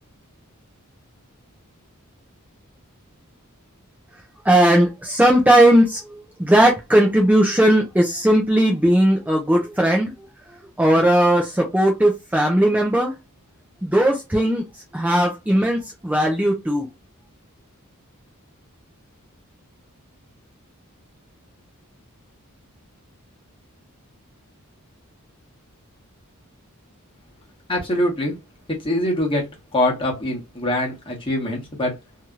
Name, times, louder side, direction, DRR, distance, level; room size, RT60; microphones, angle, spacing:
voice 1, 4.5-6.0 6.4-10.1 10.8-13.1 13.8-14.6 14.9-16.9, right 1 dB, 5° right, 0.5 m, -17 dB
voice 2, 27.7-28.3 28.8-29.5 29.7-31.9, left 1 dB, 25° left, 1.2 m, -23 dB
3.1 x 2.8 x 2.4 m
head